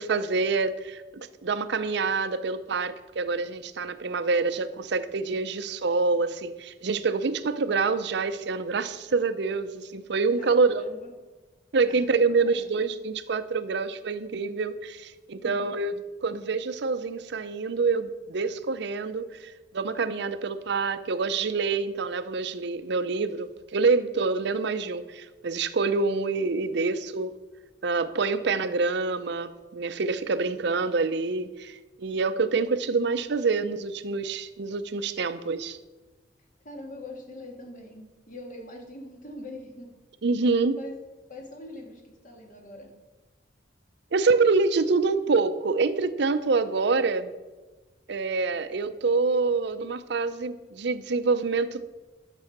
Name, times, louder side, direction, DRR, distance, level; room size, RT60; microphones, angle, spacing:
voice 1, 0.0-10.9 11.7-15.9 16.2-27.3 27.8-35.8 40.2-40.8 44.1-47.3 48.1-51.8, right 4 dB, 70° right, 12 dB, 0.6 m, -26 dB
voice 2, 10.4-11.1 11.9-12.8 15.4-15.6 36.6-40.0 40.4-41.0 41.3-42.9, left 1 dB, 45° left, 2 dB, 2.1 m, -43 dB
11.5 x 7.0 x 5.9 m, 1.2 s
head